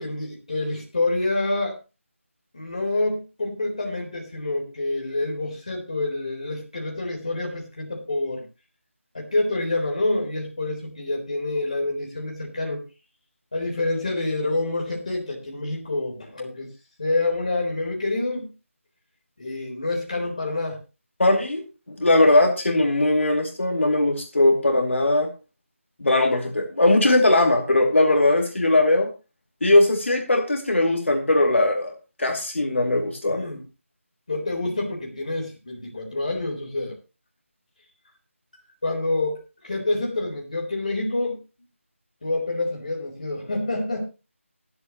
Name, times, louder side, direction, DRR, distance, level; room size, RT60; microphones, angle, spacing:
voice 1, 0.0-1.8 2.5-8.4 9.1-12.8 13.5-16.7 17.0-18.5 19.4-20.8 33.3-33.6 34.3-37.0 38.8-41.4 42.2-44.0, left 2 dB, 30° left, -1 dB, 3.9 m, -27 dB
voice 2, 21.2-21.6 22.0-25.3 26.0-29.1 29.6-31.9 32.2-33.5, left 2 dB, 60° left, 2 dB, 2.7 m, -19 dB
24.0 x 8.1 x 3.0 m, 0.30 s
figure-of-eight pair, 180°, 7 cm